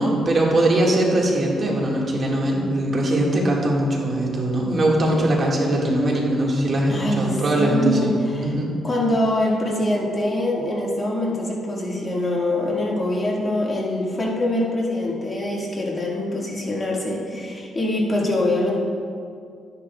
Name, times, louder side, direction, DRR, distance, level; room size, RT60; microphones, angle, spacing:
voice 1, 0.0-8.2 8.4-8.7, right 1 dB, 40° right, -2 dB, 1.8 m, -21 dB
voice 2, 6.9-8.5 8.8-18.8, left 1 dB, 30° left, -3 dB, 1.8 m, -24 dB
12.5 x 9.7 x 2.3 m, 2.3 s
cardioid pair, 90°, 0 cm